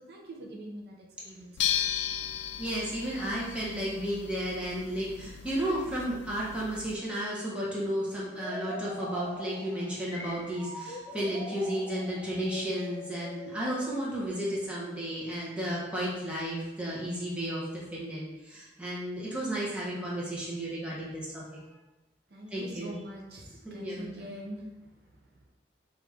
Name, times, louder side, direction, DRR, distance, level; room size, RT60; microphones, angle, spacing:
voice 1, 0.1-1.8 22.3-25.5, right 1 dB, 60° right, 0 dB, 0.6 m, -44 dB
sound 1, 1.6-7.0, left 9 dB, 75° left, 0.3 m, -35 dB
voice 2, 2.6-21.4 22.5-23.0 23.6-24.1, equal, 5° right, -7 dB, 0.9 m, -33 dB
sound 2, 8.3-15.0, left 1 dB, 15° left, 0.6 m, -42 dB
5.0 x 2.5 x 3.4 m, 1.0 s
head